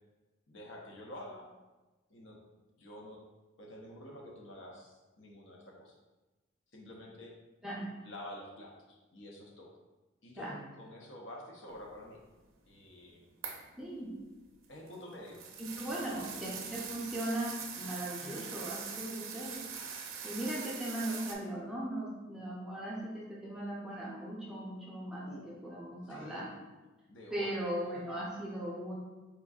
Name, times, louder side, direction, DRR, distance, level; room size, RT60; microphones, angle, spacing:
voice 1, 0.5-1.5 2.1-2.4 2.8-3.2 3.6-5.9 6.7-7.3 8.0-9.7 10.2-12.2 12.7-13.2 14.7-15.4 16.2-16.3 18.2-18.6 21.0-21.1 25.2-25.5 26.0-26.4 27.0-27.5, left 1 dB, 60° left, -1 dB, 0.6 m, -49 dB
sound 1, 13.4-13.7 14.6-21.3, right 6 dB, 80° right, 0.5 m, -43 dB
voice 2, 13.8-14.2 15.6-19.6 20.2-26.5 27.3-29.0, right 1 dB, 5° right, -7 dB, 0.5 m, -38 dB
4.4 x 2.5 x 2.3 m, 1.1 s
head